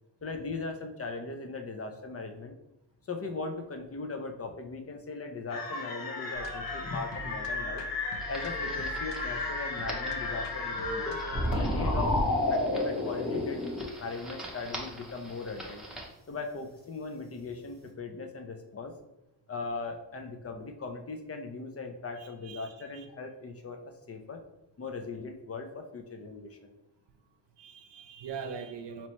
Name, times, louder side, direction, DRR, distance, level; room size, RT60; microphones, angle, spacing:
voice 1, 0.2-2.5 3.1-7.8 8.3-11.2 11.6-12.2 12.5-13.6 14.0-15.9 16.3-18.9 19.5-24.4 24.8-26.7, left 3 dB, 35° left, 5 dB, 0.5 m, -39 dB
sound 1, 5.5-13.8, left 2 dB, 55° left, 1.0 m, -33 dB
sound 2, 6.3-11.5, left 2 dB, 80° left, 0.7 m, -45 dB
sound 3, 8.2-16.1, equal, ahead, 0.7 m, -37 dB
voice 2, 22.2-23.0 27.6-29.1, right 6 dB, 80° right, 6 dB, 0.7 m, -42 dB
4.3 x 2.9 x 3.0 m, 0.91 s
wide cardioid pair, 115°, 42 cm